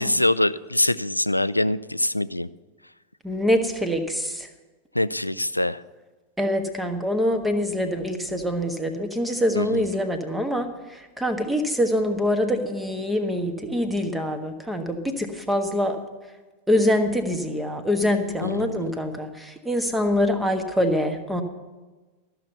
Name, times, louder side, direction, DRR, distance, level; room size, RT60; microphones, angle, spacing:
voice 1, 0.0-2.5 4.9-5.8 9.6-9.8 18.4-18.9, left 1 dB, 85° left, 16 dB, 0.3 m, -24 dB
voice 2, 3.2-4.5 6.4-16.0 16.7-21.4, left 1 dB, 5° right, 6 dB, 1.4 m, -25 dB
13.5 x 6.8 x 7.9 m, 1.2 s
figure-of-eight pair, 90°, 0 cm